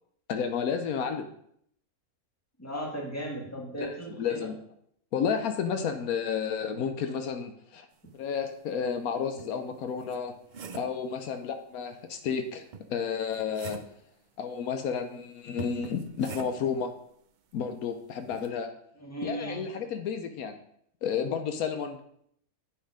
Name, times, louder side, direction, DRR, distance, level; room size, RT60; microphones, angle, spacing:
voice 1, 0.3-1.3 3.8-4.6 5.1-7.9 8.2-10.3 10.7-12.6 12.9-13.8 14.4-16.9 17.5-18.7 19.2-20.6 21.0-22.0, left 7 dB, 80° left, 7 dB, 1.2 m, -31 dB
voice 2, 2.6-4.5 19.0-19.6, right 1 dB, 10° left, -1 dB, 1.9 m, -36 dB
sound 1, 8.8-8.9 9.4-11.0 12.7-14.0 15.6-16.8 18.3-18.5, right 6 dB, 60° right, 0.5 m, -43 dB
8.6 x 5.8 x 4.9 m, 0.69 s
omnidirectional pair, 1.5 m